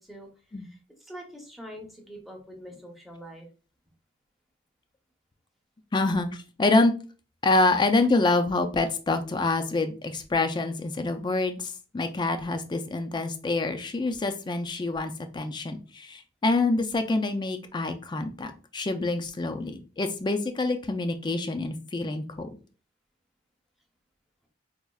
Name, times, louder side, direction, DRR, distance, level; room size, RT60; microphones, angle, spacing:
voice 1, 0.0-3.5, equal, ahead, 0 dB, 0.7 m, -45 dB
voice 2, 5.9-6.9 7.4-22.6, left 2 dB, 25° left, 7 dB, 0.4 m, -26 dB
4.2 x 2.4 x 2.3 m, 0.36 s
head